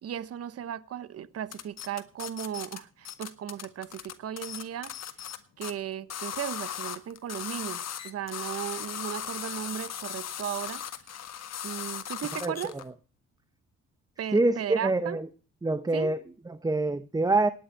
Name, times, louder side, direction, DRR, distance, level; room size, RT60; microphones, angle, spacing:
voice 1, 0.0-4.9 5.6-10.8 11.6-12.8 14.2-15.2 15.9-16.1, right 10 dB, 55° right, 0.9 m, -36 dB
sound 1, 1.5-2.8 3.0-5.4 5.6-5.7 6.1-12.8, left 9 dB, 60° left, 1.7 m, -37 dB
voice 2, 12.4-12.8 14.3-15.3 15.6-17.5, right 2 dB, 10° right, 0.7 m, -26 dB
18.5 x 9.5 x 4.5 m
cardioid pair, 90°, 30 cm